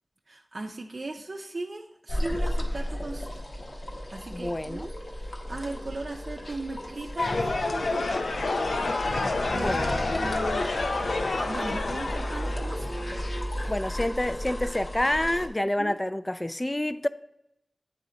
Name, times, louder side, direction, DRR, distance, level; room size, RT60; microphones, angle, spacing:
voice 1, 0.3-3.4 4.1-8.4 9.1-10.6 11.5-13.0 13.5-13.8 15.6-16.0, right 2 dB, 60° right, 0.5 m, -38 dB
sound 1, 2.1-15.5, left 1 dB, 50° left, 1.0 m, -35 dB
voice 2, 4.3-4.9 9.5-10.2 13.7-17.1, left 1 dB, 20° left, 0.3 m, -28 dB
sound 2, 7.2-13.0, left 3 dB, 85° left, 0.5 m, -28 dB
sound 3, 9.5-14.5, equal, 15° right, 0.7 m, -37 dB
8.1 x 4.1 x 3.7 m
wide cardioid pair, 65°, 0 cm